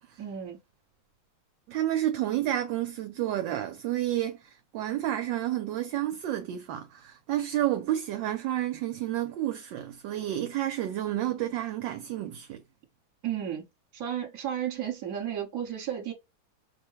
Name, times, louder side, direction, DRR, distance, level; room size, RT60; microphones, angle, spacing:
voice 1, 0.2-0.6 13.2-13.7 13.9-16.1, right 10 dB, 50° right, 1.5 m, -33 dB
voice 2, 1.7-12.6, right 13 dB, 75° right, 1.2 m, -30 dB
6.0 x 2.2 x 3.0 m
omnidirectional pair, 2.2 m